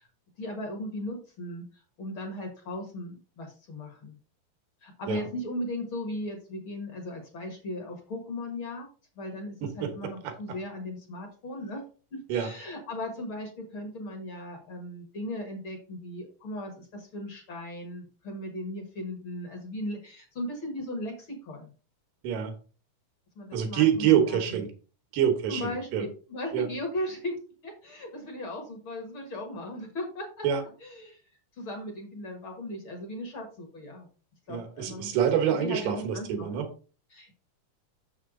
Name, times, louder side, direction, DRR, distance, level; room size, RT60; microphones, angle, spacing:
voice 1, 0.4-1.7 2.0-4.2 4.8-8.9 9.2-11.8 12.1-21.7 23.4-24.6 25.5-30.5 30.8-31.2 31.6-34.1 34.5-35.1 35.5-36.5 37.1-37.3, left 1 dB, 50° left, 3 dB, 1.8 m, -37 dB
voice 2, 9.6-10.3 12.3-12.5 22.2-22.5 23.5-24.7 25.1-26.1 26.5-26.7 30.4-30.6 34.5-36.7, right 9 dB, 90° right, 6 dB, 2.9 m, -26 dB
7.1 x 6.4 x 3.7 m, 0.37 s
omnidirectional pair, 3.8 m